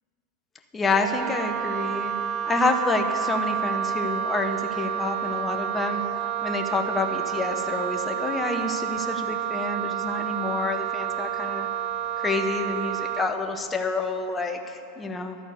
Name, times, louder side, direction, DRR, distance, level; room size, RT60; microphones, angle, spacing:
voice 1, 0.7-2.1 2.4-6.0 6.4-11.7 12.2-15.4, left 3 dB, 20° left, 5 dB, 0.9 m, -28 dB
Wind instrument woodwind instrument, 0.9-13.4, right 9 dB, 45° right, 0.4 m, -29 dB
12.5 x 4.3 x 8.2 m, 2.7 s
figure-of-eight pair, 90°, 0 cm